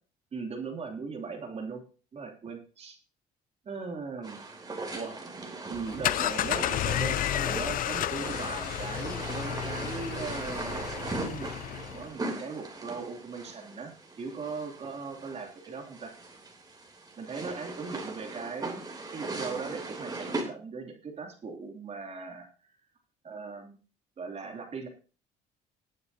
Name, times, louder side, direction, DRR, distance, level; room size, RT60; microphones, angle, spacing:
voice 1, 0.3-1.8 2.1-3.0 3.6-4.4 4.9-5.1 5.7-11.5 11.9-16.1 17.2-18.8 19.1-22.5 23.2-23.8 24.2-24.9, right 4 dB, 40° right, 3 dB, 2.9 m, -39 dB
sound 1, 4.2-20.4, right 3 dB, 25° right, 3.2 m, -39 dB
sound 2, 5.7-12.1, left 13 dB, 55° left, 0.4 m, -32 dB
18.5 x 9.6 x 2.8 m, 0.37 s
cardioid pair, 110°, 17 cm